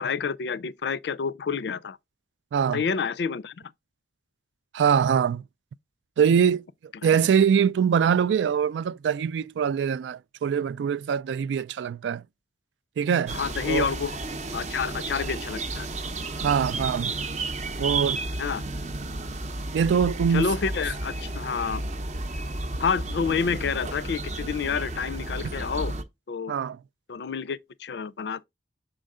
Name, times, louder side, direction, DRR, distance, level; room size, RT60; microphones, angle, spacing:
voice 1, 0.0-2.0 2.7-3.5 7.0-7.1 13.3-14.1 14.5-15.9 18.4-18.6 20.3-21.9 22.8-26.0 26.3-26.5 27.1-28.4, left 6 dB, 70° left, 0.4 m, -29 dB
voice 2, 2.5-2.8 4.7-5.4 6.2-6.7 7.0-12.2 13.0-13.4 13.7-13.9 16.4-17.1 17.8-18.2 19.7-20.5 26.5-26.8, right 7 dB, 90° right, 0.3 m, -23 dB
sound 1, 13.3-26.0, right 2 dB, 40° right, 0.6 m, -32 dB
6.4 x 4.4 x 3.6 m
head